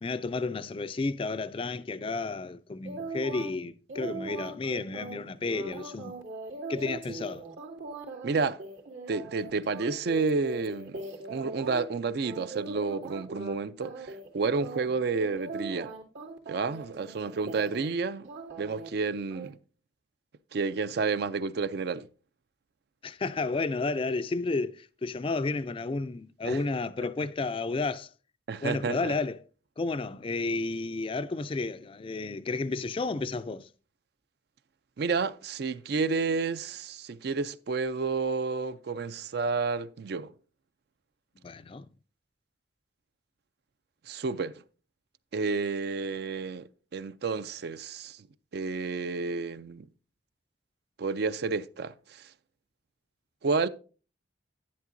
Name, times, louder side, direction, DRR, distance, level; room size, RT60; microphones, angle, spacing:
voice 1, 0.0-6.1 6.7-7.4 23.0-28.1 28.6-29.4 29.8-33.7 41.4-41.9, left 3 dB, 30° left, 0.3 m, -32 dB
sound 1, 2.8-3.5 3.9-11.9 12.2-13.5 13.8-14.3 14.6-17.9 18.2-18.9 19.3-19.5, right 3 dB, 90° right, 2.5 m, -40 dB
voice 2, 8.2-8.6 9.1-11.0 11.3-15.9 16.5-18.3 18.6-19.6 20.5-22.1 26.4-26.6 28.5-29.1 35.0-40.3 44.1-44.6 45.3-48.2 48.5-49.9 51.0-52.2 53.4-53.7, right 4 dB, 55° right, 0.4 m, -30 dB
11.0 x 10.0 x 2.6 m
head